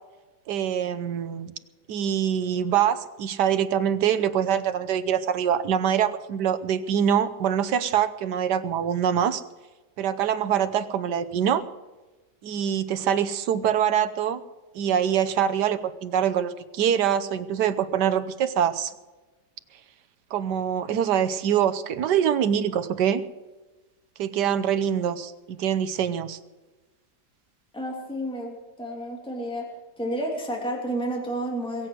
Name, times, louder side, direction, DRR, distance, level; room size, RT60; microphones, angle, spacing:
voice 1, 0.5-1.5 1.9-9.4 10.0-11.6 12.4-14.4 14.7-18.9 20.3-23.2 24.2-26.4, right 9 dB, 80° right, 11 dB, 1.5 m, -24 dB
voice 2, 27.7-29.7 30.0-31.9, right 1 dB, 5° left, -1 dB, 2.9 m, -31 dB
22.0 x 7.8 x 7.9 m, 1.2 s
omnidirectional pair, 1.8 m